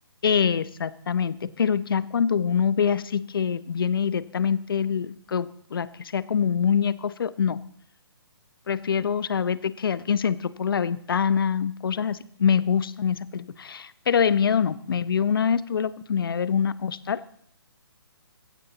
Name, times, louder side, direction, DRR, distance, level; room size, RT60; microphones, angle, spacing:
voice 1, 0.2-7.6 8.7-17.2, left 7 dB, 60° left, 17 dB, 0.9 m, -25 dB
22.0 x 16.5 x 4.0 m, 0.66 s
figure-of-eight pair, 145°, 13 cm